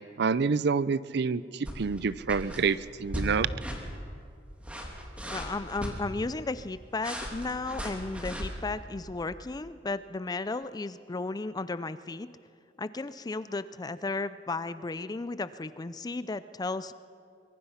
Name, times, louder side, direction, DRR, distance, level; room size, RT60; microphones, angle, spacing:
voice 1, 0.0-3.5, right 5 dB, 65° right, 17 dB, 0.5 m, -28 dB
sound 1, 1.6-2.0 2.3-2.6 3.1-3.3 3.6-3.8 4.5-5.9 7.0-8.5, equal, 5° right, 2.9 m, -36 dB
voice 2, 5.3-12.3 12.8-16.9, left 3 dB, 20° left, 14 dB, 0.4 m, -34 dB
24.0 x 22.0 x 5.7 m, 2.3 s
head